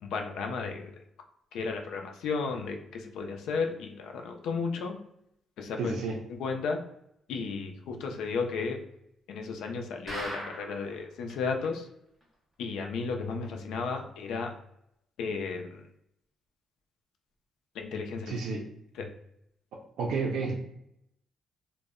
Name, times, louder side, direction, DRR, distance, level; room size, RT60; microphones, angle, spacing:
voice 1, 0.0-0.9 1.5-5.0 5.6-5.9 6.4-6.8 7.3-8.8 9.3-11.9 12.6-14.5 15.2-15.8 17.8-18.3 19.0-19.1, left 4 dB, 85° left, 4 dB, 0.4 m, -33 dB
voice 2, 5.8-6.2 18.3-18.6 20.0-20.5, right 4 dB, 80° right, -2 dB, 0.4 m, -30 dB
sound 1, 10.1-10.9 11.3-11.4 11.6-11.7 12.2-12.3, equal, 10° right, 0.7 m, -38 dB
2.1 x 2.0 x 3.5 m, 0.77 s
cardioid pair, 145°, 0 cm